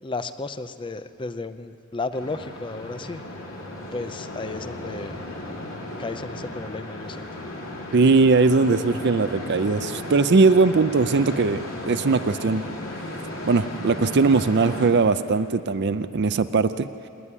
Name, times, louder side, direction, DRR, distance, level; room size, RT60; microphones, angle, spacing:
voice 1, 0.0-3.2 3.9-5.2 6.0-7.3, left 3 dB, 25° left, 11 dB, 0.6 m, -33 dB
sound 1, 2.1-14.9, left 1 dB, 75° left, 3.3 m, -35 dB
voice 2, 7.9-11.6 11.9-12.6 13.4-16.9, right 4 dB, 55° right, 11 dB, 0.5 m, -20 dB
27.0 x 9.9 x 9.8 m, 2.4 s
head